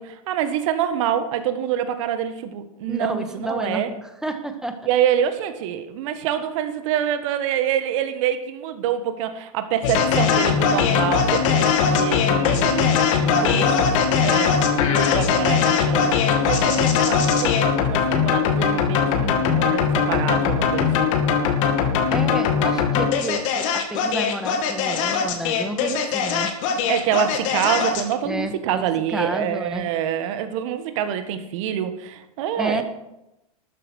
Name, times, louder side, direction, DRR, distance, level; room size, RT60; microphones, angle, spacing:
voice 1, 0.0-3.9 4.9-14.6 14.8-21.1 26.9-32.8, right 10 dB, 55° right, 9 dB, 1.6 m, -26 dB
voice 2, 2.9-4.8 13.2-13.7 22.1-26.5 28.2-29.9 32.6-32.8, right 1 dB, 5° right, 7 dB, 1.7 m, -30 dB
sound 1, 9.8-28.1, left 6 dB, 55° left, 2.6 m, -20 dB
13.0 x 9.3 x 6.4 m, 0.91 s
hypercardioid pair, 110°, 19 cm